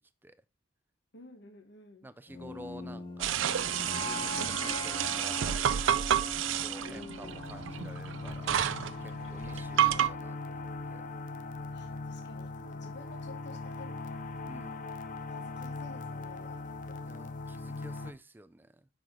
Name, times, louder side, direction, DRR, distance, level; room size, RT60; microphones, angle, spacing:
voice 1, 1.1-2.1 6.8-7.5 11.7-14.2 15.3-17.3, left 3 dB, 60° left, 1.2 m, -52 dB
voice 2, 2.0-3.4 3.9-5.9 6.6-8.6 9.0-11.0 14.5-14.9 17.0-18.7, right 1 dB, 10° right, 0.4 m, -50 dB
sound 1, 2.3-8.4, left 2 dB, 25° left, 1.7 m, -41 dB
sound 2, 3.2-10.1, right 10 dB, 85° right, 0.4 m, -30 dB
sound 3, 7.2-18.1, left 3 dB, 45° left, 0.6 m, -40 dB
5.8 x 4.9 x 3.7 m
head